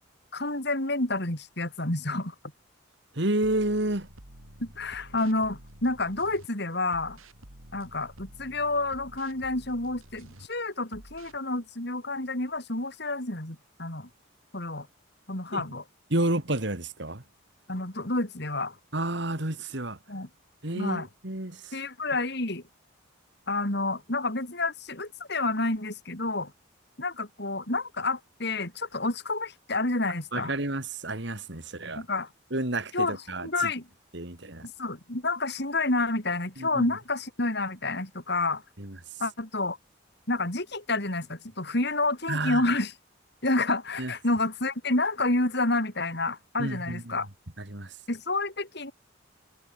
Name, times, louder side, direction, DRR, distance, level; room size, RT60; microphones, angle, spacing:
voice 1, 0.3-2.3 4.6-7.2 7.7-14.1 14.5-14.9 15.3-15.8 17.7-18.8 20.1-20.3 20.7-21.1 21.7-22.6 23.5-26.5 27.0-30.5 31.9-32.3 32.9-33.2 33.4-33.9 34.6-38.6 39.2-39.8 40.3-42.9 43.4-47.3 48.1-48.9, left 2 dB, 55° left, 4.3 m, -29 dB
voice 2, 3.1-4.1 15.5-15.6 16.1-17.2 18.9-20.0 20.6-21.8 30.3-32.0 32.5-33.7 34.1-34.7 36.6-36.9 38.8-39.0 42.3-42.6 44.0-44.1 46.6-47.2 47.6-48.0, right 1 dB, 55° right, 2.8 m, -30 dB
sound 1, 3.4-6.5 6.9-10.5 10.9-11.4, right 1 dB, 85° right, 6.8 m, -50 dB
head